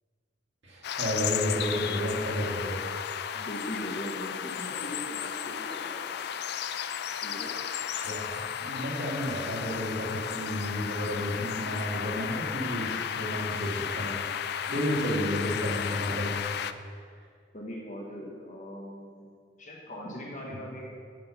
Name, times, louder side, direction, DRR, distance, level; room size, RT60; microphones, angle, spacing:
voice 1, 0.6-2.8 7.9-14.2 14.7-16.4 20.5-20.6, equal, 65° right, -5 dB, 2.2 m, -32 dB
sound 1, 0.8-16.7, left 8 dB, 55° left, 0.3 m, -34 dB
voice 2, 3.3-6.1 7.2-7.5 14.7-15.3 17.5-21.0, equal, 40° left, -2 dB, 1.1 m, -40 dB
7.5 x 6.2 x 5.8 m, 2.1 s
head